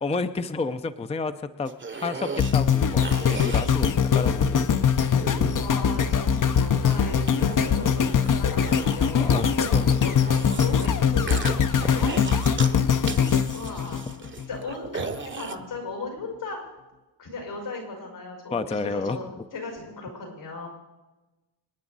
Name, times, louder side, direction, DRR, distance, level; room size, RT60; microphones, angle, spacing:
voice 1, 0.0-3.0 3.3-4.7 5.1-5.3 9.2-9.5 9.7-9.8 18.5-19.2, left 3 dB, 15° left, 10 dB, 0.5 m, -30 dB
sound 1, 1.7-4.6 5.2-6.2 6.8-10.9 11.3-12.8 13.0-15.5, right 4 dB, 25° right, 0.8 m, -37 dB
sound 2, 2.4-14.6 15.1-15.2, left 7 dB, 45° left, 0.7 m, -22 dB
voice 2, 5.6-12.1 13.5-14.0 14.5-16.6 17.2-20.7, left 3 dB, 85° left, 1 dB, 5.5 m, -37 dB
26.0 x 10.0 x 4.1 m, 1.1 s
wide cardioid pair, 110°, 43 cm